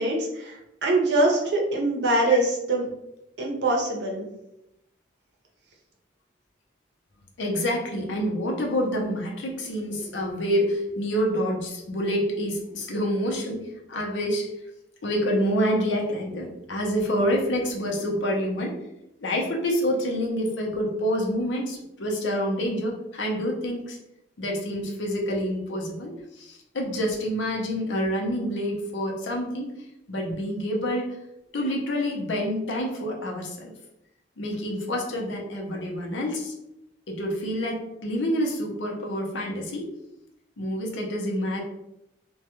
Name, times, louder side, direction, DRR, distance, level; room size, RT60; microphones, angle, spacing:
voice 1, 0.0-2.8 3.4-4.3, right 2 dB, 70° right, -1 dB, 0.6 m, -23 dB
voice 2, 7.4-14.5 15.0-18.8 19.2-24.0 24.4-29.7 30.1-31.1 31.5-33.7 34.4-36.5 37.1-39.9 40.6-41.6, equal, 80° left, 0 dB, 0.6 m, -27 dB
2.2 x 2.2 x 2.9 m, 0.85 s
head